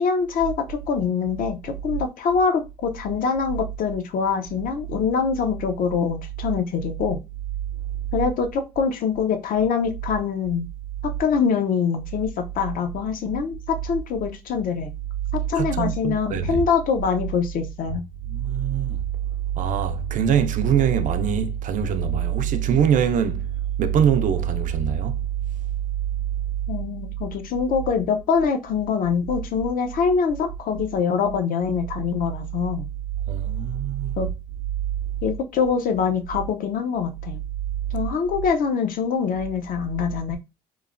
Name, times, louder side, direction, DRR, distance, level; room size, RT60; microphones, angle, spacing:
voice 1, 0.0-7.2 8.1-10.7 11.0-14.9 15.5-18.0 26.7-32.9 34.2-34.3 35.2-37.4 37.9-40.4, left 6 dB, 55° left, 0.5 m, -24 dB
voice 2, 15.6-16.6 17.9-18.0 18.2-19.0 19.6-23.5 23.8-25.2 33.3-34.3, right 8 dB, 50° right, 0.4 m, -23 dB
3.0 x 2.0 x 2.4 m
cardioid pair, 110°, 17 cm